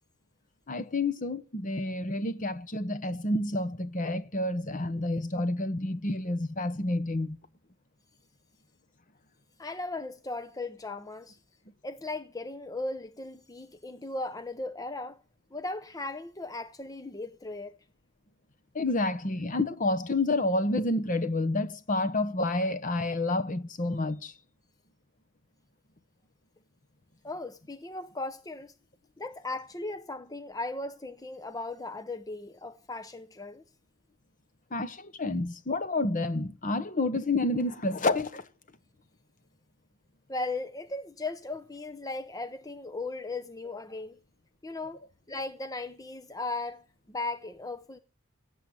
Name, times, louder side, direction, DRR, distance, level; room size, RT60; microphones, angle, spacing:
voice 1, 0.7-7.4 18.7-24.3 34.7-38.4, left 2 dB, 35° left, 1.0 m, -29 dB
voice 2, 9.6-11.4 11.8-15.2 15.5-17.8 27.2-28.7 29.2-33.6 40.3-44.2 44.6-45.0 45.3-48.0, left 2 dB, 15° left, 0.6 m, -37 dB
17.0 x 7.8 x 8.8 m
head